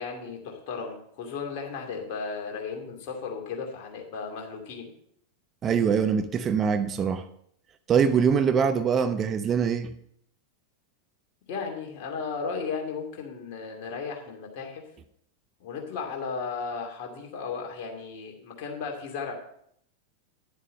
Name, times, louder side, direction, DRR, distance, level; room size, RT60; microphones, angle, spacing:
voice 1, 0.0-4.9 11.5-14.8 15.6-19.3, left 5 dB, 45° left, 2.5 m, -35 dB
voice 2, 5.6-7.3 7.9-9.9, right 7 dB, 25° right, 0.6 m, -23 dB
10.5 x 7.3 x 5.4 m
figure-of-eight pair, 90°, 0 cm